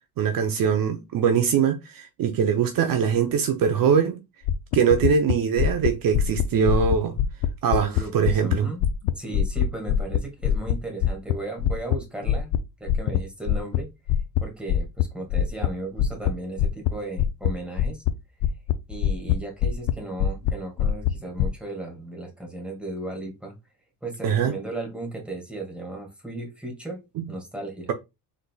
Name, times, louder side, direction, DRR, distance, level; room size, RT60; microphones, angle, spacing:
voice 1, 0.2-4.2 4.7-7.2 7.6-8.7 24.2-24.5 27.2-27.3, right 7 dB, 55° right, 0.6 m, -22 dB
sound 1, 4.5-8.6 8.8-12.0 12.2-12.6 12.9-13.2 13.5-13.8 14.1-14.4 14.7-15.0 15.3-15.7 16.0-16.3 16.6-16.9 17.2-17.5 17.8-18.1 18.4-19.4 19.6-19.9 20.2-20.5 20.8-21.5, left 10 dB, 80° left, 0.6 m, -22 dB
voice 2, 7.7-8.8 9.1-12.5 12.8-13.9 14.4-18.0 18.9-23.5 24.0-27.0 27.3-27.9, right 2 dB, 5° right, 1.9 m, -35 dB
5.1 x 4.0 x 2.3 m
cardioid pair, 115°, 40 cm